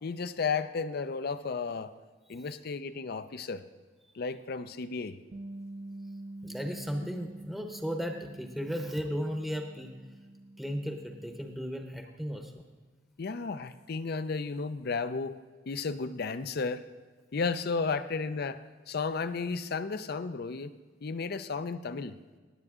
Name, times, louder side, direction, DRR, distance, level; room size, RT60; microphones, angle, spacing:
voice 1, 0.0-1.9 2.3-3.6 4.2-5.2 13.2-15.4 15.7-16.8 17.3-18.6 18.9-20.7 21.0-22.1, left 4 dB, 60° left, 13 dB, 0.5 m, -33 dB
Bass guitar, 5.3-11.6, right 1 dB, 35° right, 0.4 m, -46 dB
voice 2, 6.4-9.9 10.6-12.5, equal, ahead, 4 dB, 0.8 m, -35 dB
17.5 x 7.9 x 3.7 m, 1.4 s
head